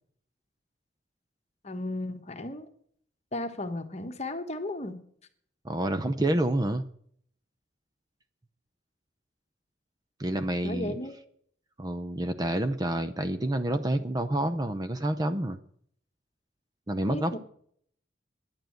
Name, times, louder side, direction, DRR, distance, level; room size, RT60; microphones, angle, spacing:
voice 1, 1.6-2.7 3.3-5.0 10.6-11.1 17.1-17.4, left 1 dB, 35° left, 7 dB, 1.3 m, -34 dB
voice 2, 5.6-6.8 10.2-11.0 11.8-15.6 16.9-17.4, right 1 dB, 20° right, 10 dB, 0.6 m, -28 dB
10.5 x 9.2 x 7.8 m, 0.63 s
head